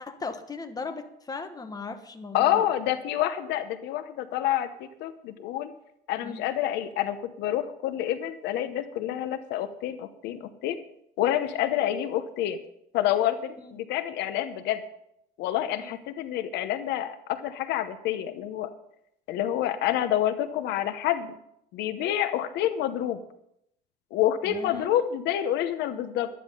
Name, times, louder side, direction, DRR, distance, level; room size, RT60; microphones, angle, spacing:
voice 1, 0.0-2.6 6.2-6.4 13.6-13.7 15.8-16.0 24.4-24.9, left 4 dB, 20° left, 8 dB, 1.2 m, -37 dB
voice 2, 2.3-5.7 6.1-10.8 11.2-12.6 12.9-14.8 15.4-18.7 19.3-21.3 21.7-23.2 24.1-26.3, left 11 dB, 85° left, 11 dB, 0.9 m, -28 dB
12.0 x 10.0 x 5.4 m, 0.78 s
cardioid pair, 110°, 17 cm